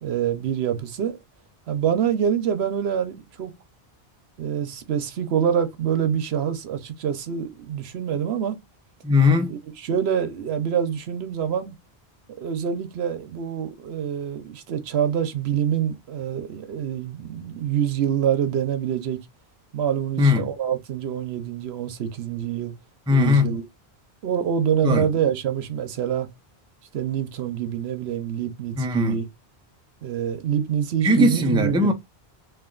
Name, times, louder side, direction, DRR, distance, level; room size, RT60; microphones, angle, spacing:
voice 1, 0.0-1.2 1.7-3.5 4.4-8.6 9.5-11.8 12.4-19.2 19.7-22.7 23.1-23.6 24.2-26.3 26.9-29.2 30.0-31.9, right 8 dB, 80° right, 0.9 m, -26 dB
voice 2, 9.0-9.6 20.2-20.5 23.1-23.5 24.8-25.1 28.8-29.2 31.0-31.9, left 3 dB, 5° right, 0.4 m, -19 dB
3.3 x 2.6 x 3.7 m
omnidirectional pair, 1.1 m